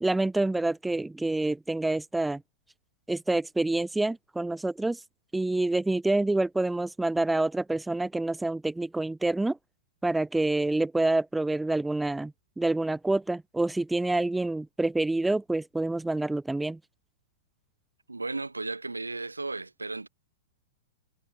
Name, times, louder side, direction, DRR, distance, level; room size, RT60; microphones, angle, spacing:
voice 1, 0.0-2.4 3.1-5.0 5.3-9.6 10.0-16.8, right 2 dB, 5° right, 0.5 m, -27 dB
voice 2, 18.1-20.1, right 3 dB, 85° right, 3.1 m, -35 dB
figure-of-eight pair, 105°, 0 cm